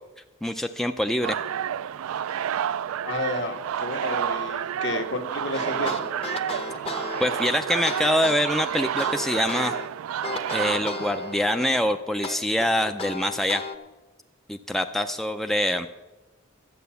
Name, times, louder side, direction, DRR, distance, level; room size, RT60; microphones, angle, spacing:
voice 1, 0.4-1.4 7.2-9.7 10.5-13.6 14.5-15.9, left 1 dB, ahead, 6 dB, 0.4 m, -25 dB
sound 1, 1.2-11.7, right 9 dB, 85° right, 0.3 m, -30 dB
voice 2, 3.0-6.1, left 2 dB, 60° left, 4 dB, 1.4 m, -31 dB
sound 2, 5.5-9.9 10.2-11.8 12.2-13.8, left 3 dB, 30° left, 0.8 m, -35 dB
12.5 x 8.5 x 6.9 m, 1.2 s
head